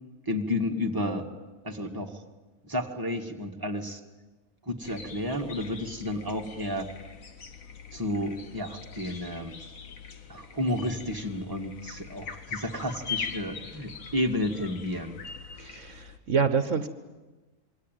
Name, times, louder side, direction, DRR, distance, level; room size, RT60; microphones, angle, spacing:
voice 1, 0.3-1.3 1.6-2.2 2.6-4.0 4.6-6.9 7.9-9.6 10.3-15.2, left 1 dB, 15° right, 2 dB, 2.1 m, -31 dB
sound 1, 4.8-16.2, left 6 dB, 80° left, 2.0 m, -42 dB
voice 2, 15.6-16.9, right 6 dB, 65° right, 10 dB, 1.4 m, -27 dB
27.0 x 22.5 x 9.3 m, 1.2 s
omnidirectional pair, 1.4 m